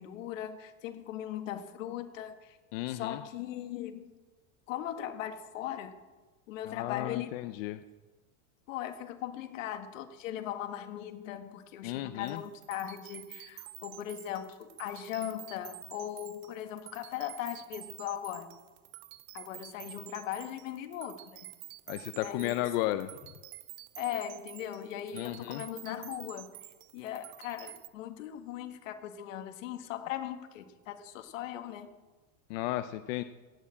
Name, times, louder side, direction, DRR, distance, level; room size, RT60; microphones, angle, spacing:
voice 1, 0.0-2.6 2.9-4.1 4.7-5.9 6.5-7.3 8.7-18.5 19.3-21.4 22.1-23.0 24.0-26.5 26.9-31.9, left 11 dB, 75° left, 7 dB, 1.7 m, -39 dB
voice 2, 2.7-3.2 6.7-7.8 11.8-12.4 21.9-23.1 25.1-25.6 32.5-33.2, left 15 dB, 50° left, 11 dB, 0.5 m, -34 dB
sound 1, 12.2-27.9, right 18 dB, 40° right, 0.5 m, -49 dB
16.0 x 6.6 x 8.6 m, 1.2 s
supercardioid pair, 165°, 39 cm